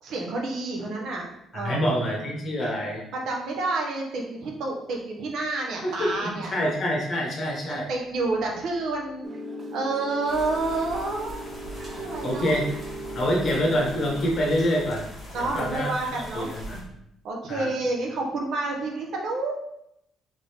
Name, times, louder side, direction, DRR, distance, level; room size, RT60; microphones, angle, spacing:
voice 1, 0.0-1.2 1.5-1.9 3.1-6.5 7.7-9.3 9.7-11.4 11.9-12.6 15.3-16.5 17.2-19.5, right 3 dB, 65° right, 0 dB, 1.0 m, -29 dB
voice 2, 1.6-3.0 5.8-7.9 12.2-12.6 13.1-15.1 15.3-16.8 17.5-17.7, equal, 40° left, -1 dB, 1.3 m, -26 dB
sound 1, 9.2-14.3, right 1 dB, 25° right, 0.6 m, -37 dB
sound 2, 10.3-16.8, equal, 5° left, 1.5 m, -41 dB
3.9 x 3.7 x 3.4 m, 0.79 s
cardioid pair, 140°, 0 cm